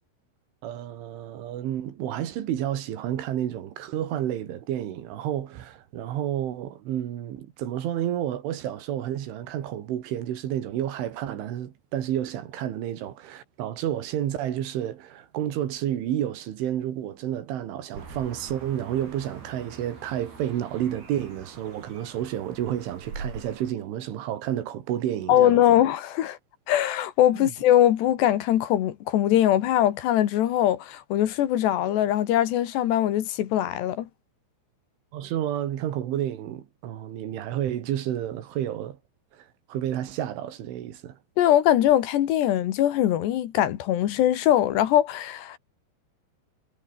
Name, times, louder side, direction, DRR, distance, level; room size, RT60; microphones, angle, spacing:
voice 1, 0.6-25.8 27.3-27.5 35.1-39.0 39.3-41.2, right 11 dB, 85° right, 4.8 m, -30 dB
sound 1, 17.9-23.7, right 4 dB, 55° right, 9.8 m, -43 dB
voice 2, 25.3-26.4 26.7-34.1 41.4-45.6, left 12 dB, 70° left, 3.6 m, -22 dB
omnidirectional pair, 5.4 m